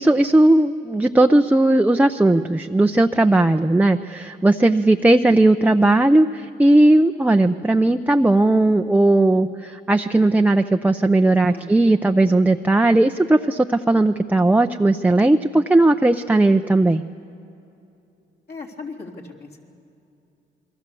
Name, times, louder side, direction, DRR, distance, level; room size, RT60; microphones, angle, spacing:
voice 1, 0.0-17.0, right 2 dB, 10° right, 5 dB, 0.6 m, -17 dB
voice 2, 18.5-19.6, left 4 dB, 55° left, -1 dB, 3.7 m, -37 dB
28.5 x 22.0 x 7.0 m, 2.8 s
cardioid pair, 90°, 20 cm